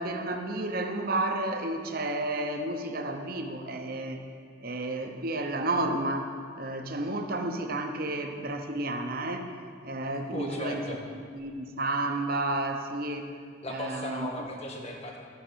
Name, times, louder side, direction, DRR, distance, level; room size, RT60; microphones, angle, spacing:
voice 1, 0.0-4.2 4.6-9.5 9.8-13.3 13.7-14.3, right 2 dB, 50° right, 5 dB, 0.9 m, -31 dB
voice 2, 10.3-11.0 13.6-15.2, left 1 dB, 35° left, 0 dB, 1.5 m, -36 dB
13.0 x 6.7 x 7.0 m, 2.1 s
head